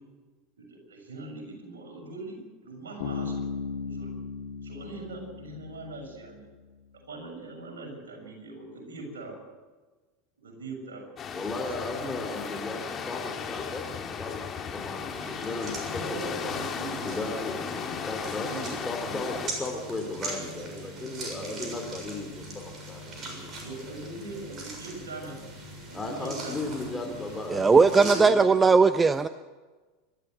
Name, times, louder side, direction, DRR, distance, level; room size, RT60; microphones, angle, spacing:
voice 1, 0.6-2.4 2.6-3.4 3.8-4.2 4.6-6.5 7.1-9.4 10.4-11.0 11.9-12.2 15.9-17.1 18.4-19.3 20.6-21.7 23.1-25.4 25.9-27.1, right 2 dB, 70° right, 1 dB, 6.8 m, -41 dB
Bass guitar, 3.0-6.6, left 5 dB, 60° left, 2.6 m, -36 dB
sound 1, 11.2-19.5, left 6 dB, 30° left, 2.4 m, -35 dB
voice 2, 11.3-13.9 14.2-14.4 14.7-16.6 17.0-18.5 18.8-23.5 25.9-28.7, left 2 dB, 10° left, 2 dB, 3.5 m, -36 dB
sound 2, 15.1-28.2, right 1 dB, 35° right, 6.9 m, -41 dB
voice 3, 27.5-29.3, right 4 dB, 20° right, 14 dB, 0.6 m, -19 dB
27.5 x 13.0 x 7.9 m, 1.3 s
figure-of-eight pair, 80°, 0 cm